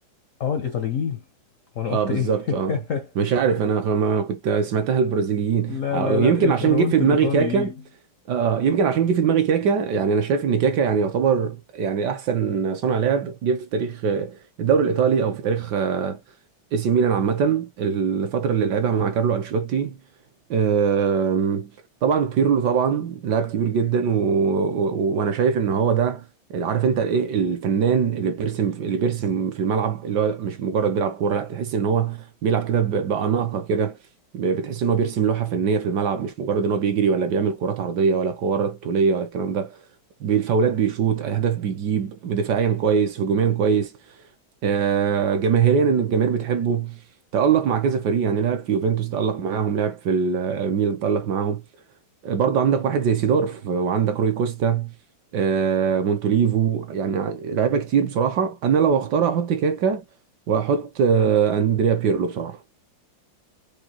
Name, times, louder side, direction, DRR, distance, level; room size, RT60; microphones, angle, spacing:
voice 1, 0.4-1.2 1.8-3.3 5.7-7.8, left 7 dB, 70° left, 0.7 m, -27 dB
voice 2, 1.9-2.7 3.2-7.7 8.3-16.2 16.7-20.0 20.5-21.7 22.0-26.2 26.5-34.0 34.3-39.8 40.2-43.9 44.6-47.0 47.3-51.6 52.2-54.9 55.3-60.0 60.5-62.6, right 6 dB, 65° right, 1.2 m, -22 dB
4.9 x 2.4 x 2.9 m
omnidirectional pair, 2.2 m